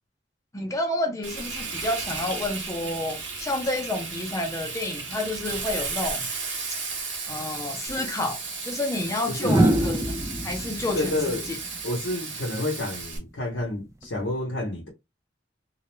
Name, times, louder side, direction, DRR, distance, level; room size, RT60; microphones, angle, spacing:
voice 1, 0.5-6.3 7.3-8.4 8.6-10.2 10.4-11.6, left 2 dB, 15° left, 0.6 m, -30 dB
Frying (food), 1.2-13.2, right 4 dB, 75° right, 0.9 m, -34 dB
sound 1, 7.9-8.0 9.4-12.5 14.0-14.3, right 1 dB, 15° right, 0.3 m, -25 dB
voice 2, 9.3-9.7 10.9-11.5 11.8-14.9, left 1 dB, 75° left, 0.7 m, -29 dB
2.3 x 2.1 x 3.0 m
head